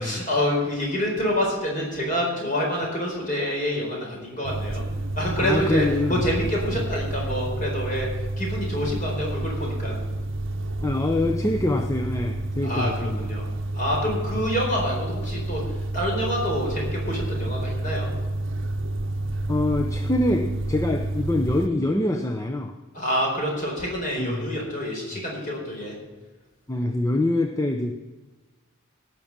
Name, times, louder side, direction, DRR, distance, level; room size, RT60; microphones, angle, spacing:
voice 1, 0.0-4.8 5.2-8.1 8.4-10.0 12.6-13.4 13.7-18.1 22.9-25.9, equal, 40° left, -1 dB, 4.4 m, -27 dB
sound 1, 4.4-21.7, right 1 dB, 65° right, 0.7 m, -29 dB
voice 2, 5.4-6.2 10.8-13.3 19.5-22.8 24.2-24.5 25.1-25.2 26.7-28.0, left 1 dB, 15° left, 4 dB, 0.6 m, -25 dB
17.5 x 6.0 x 7.3 m, 1.2 s
head